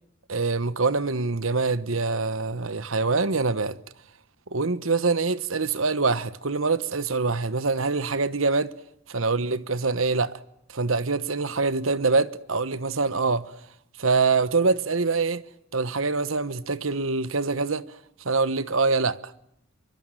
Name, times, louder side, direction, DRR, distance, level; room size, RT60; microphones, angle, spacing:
voice 1, 0.3-3.8 4.5-8.7 9.1-10.3 10.7-13.5 14.0-15.4 15.7-17.8 18.2-19.3, right 4 dB, 75° right, 1.2 m, -24 dB
25.5 x 24.5 x 9.1 m
head